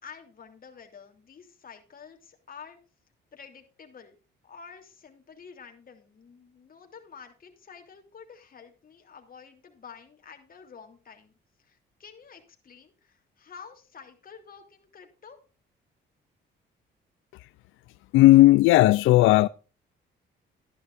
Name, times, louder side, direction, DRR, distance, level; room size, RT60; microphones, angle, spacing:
voice 1, 0.0-2.8 3.3-4.1 4.4-11.3 11.6-15.4, left 6 dB, 45° left, 3.1 m, -49 dB
voice 2, 18.1-19.5, left 17 dB, 90° left, 0.4 m, -15 dB
13.5 x 10.5 x 2.6 m
cardioid pair, 90°, 20 cm